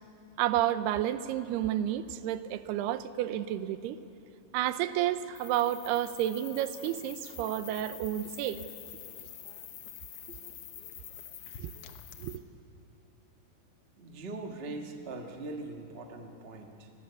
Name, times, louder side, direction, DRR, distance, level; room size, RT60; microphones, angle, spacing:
voice 1, 0.4-4.0 4.5-8.6 11.6-11.7 12.2-12.4, right 12 dB, 85° right, 12 dB, 2.8 m, -31 dB
sound 1, 5.3-12.4, left 10 dB, 85° left, 1.3 m, -47 dB
voice 2, 14.0-16.9, right 2 dB, 50° right, 2 dB, 0.7 m, -41 dB
29.5 x 21.5 x 7.0 m, 2.8 s
omnidirectional pair, 4.5 m